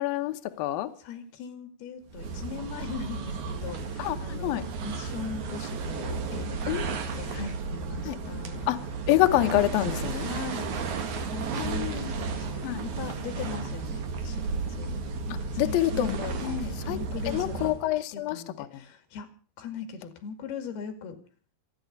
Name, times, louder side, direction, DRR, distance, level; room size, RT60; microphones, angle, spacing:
voice 1, 0.0-0.9 4.0-4.6 6.7-6.9 8.1-8.2 8.7-8.8 9.1-10.3 11.6-12.1 12.6-12.8 15.3-16.3 16.9-17.0 17.3-18.7, left 15 dB, 75° left, 7 dB, 2.2 m, -27 dB
voice 2, 1.0-8.7 10.3-10.7 11.3-15.0 15.5-17.7 18.1-19.3 19.6-21.2, left 5 dB, 60° left, 9 dB, 4.0 m, -40 dB
sound 1, 2.1-17.9, right 4 dB, 55° right, 2.5 m, -33 dB
27.0 x 9.8 x 5.3 m, 0.41 s
omnidirectional pair, 5.4 m